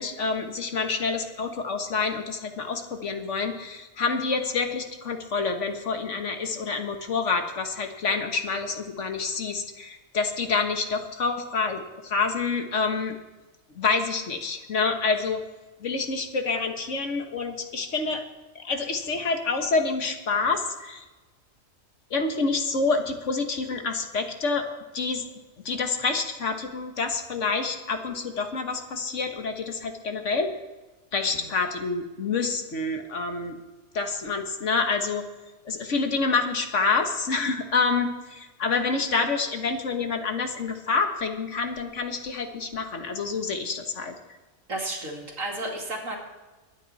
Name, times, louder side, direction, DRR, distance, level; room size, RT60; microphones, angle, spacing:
voice 1, 0.0-13.1 13.7-15.4 15.8-18.3 18.5-21.0 22.1-24.7 24.9-25.3 25.6-30.5 31.1-33.6 33.9-35.2 35.6-44.1, left 4 dB, 60° left, 5 dB, 1.6 m, -27 dB
voice 2, 44.7-46.2, right 2 dB, 70° right, 0 dB, 2.6 m, -32 dB
22.5 x 9.2 x 4.1 m, 1.2 s
omnidirectional pair, 1.4 m